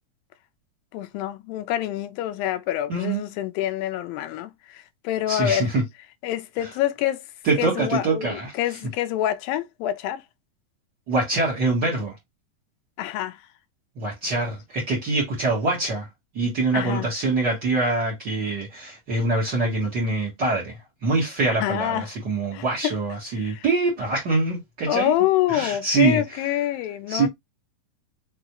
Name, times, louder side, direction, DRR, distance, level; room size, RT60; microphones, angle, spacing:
voice 1, 0.9-5.7 6.2-7.3 7.6-10.2 13.0-13.4 16.7-17.1 21.6-22.1 22.5-23.0 23.3-23.7 24.9-27.3, left 12 dB, 85° left, 2.4 m, -26 dB
voice 2, 2.9-3.2 5.3-5.8 6.6-6.7 7.4-8.5 11.1-12.1 14.0-16.1 16.3-20.7 21.0-25.1 25.5-26.2 27.1-27.3, right 3 dB, 85° right, 0.9 m, -24 dB
5.8 x 2.3 x 2.9 m
omnidirectional pair, 4.0 m